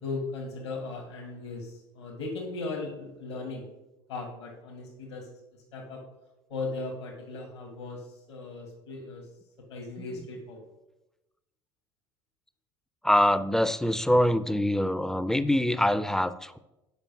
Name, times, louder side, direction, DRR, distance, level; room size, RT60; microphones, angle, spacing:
voice 1, 0.0-3.7 4.1-6.0 6.5-9.3 9.7-10.6, left 3 dB, 75° left, 0 dB, 1.7 m, -37 dB
voice 2, 13.0-16.6, left 1 dB, 5° left, 13 dB, 0.5 m, -24 dB
7.2 x 5.1 x 5.9 m, 0.96 s
figure-of-eight pair, 65°, 14 cm